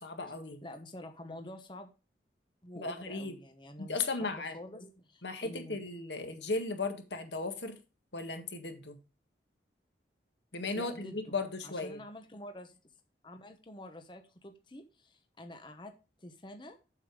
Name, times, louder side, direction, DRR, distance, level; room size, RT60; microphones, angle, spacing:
voice 1, 0.0-0.6 2.8-3.3 3.8-4.5 5.2-7.8 8.1-9.0 10.5-12.0, left 3 dB, 85° left, 6 dB, 1.8 m, -36 dB
voice 2, 0.6-1.9 2.6-5.8 10.7-11.3 11.6-12.8 13.2-15.9 16.2-16.8, left 1 dB, 25° left, 6 dB, 1.0 m, -48 dB
7.7 x 6.8 x 4.8 m, 0.31 s
head